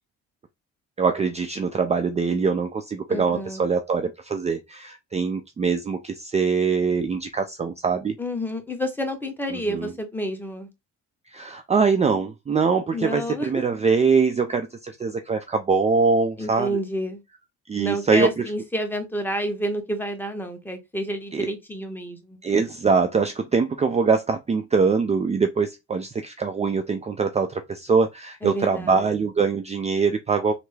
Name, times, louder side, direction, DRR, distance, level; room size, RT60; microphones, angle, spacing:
voice 1, 1.0-8.2 9.5-9.9 11.3-16.8 17.7-18.3 21.3-21.5 22.4-30.5, right 5 dB, 25° right, 0.4 m, -23 dB
voice 2, 3.1-3.7 8.2-10.7 12.9-13.6 16.4-17.2 17.8-22.4 28.4-29.1, equal, 5° left, 0.9 m, -29 dB
3.3 x 2.0 x 3.2 m
cardioid pair, 90°, 30 cm